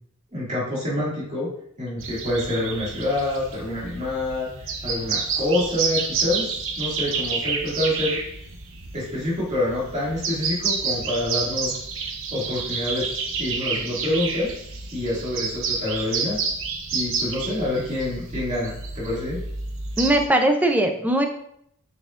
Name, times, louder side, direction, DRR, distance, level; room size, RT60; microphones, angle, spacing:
voice 1, 0.3-1.5 1.8-8.2 8.9-11.7 12.3-13.1 13.4-14.5 14.9-16.4 16.9-19.4, left 1 dB, 35° right, -6 dB, 2.3 m, -27 dB
sound 1, 2.0-20.3, right 5 dB, 65° right, 0.9 m, -29 dB
voice 2, 20.0-21.3, right 1 dB, 10° right, 4 dB, 0.6 m, -20 dB
7.0 x 5.8 x 2.5 m, 0.71 s
head